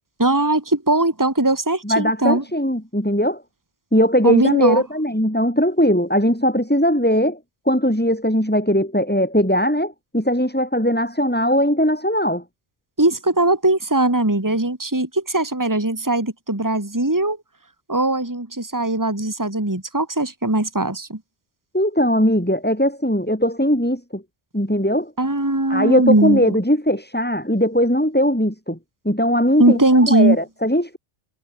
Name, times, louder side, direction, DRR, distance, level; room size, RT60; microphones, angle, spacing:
voice 1, 0.2-2.4 4.2-4.8 13.0-17.4 17.9-21.2 25.2-26.6 29.6-30.4, right 2 dB, 15° right, 2.7 m, -19 dB
voice 2, 1.8-3.4 3.9-7.4 7.7-12.4 21.7-24.2 24.5-25.1 25.7-28.8 29.0-31.0, equal, 10° left, 6.0 m, -19 dB
omnidirectional pair, 1.2 m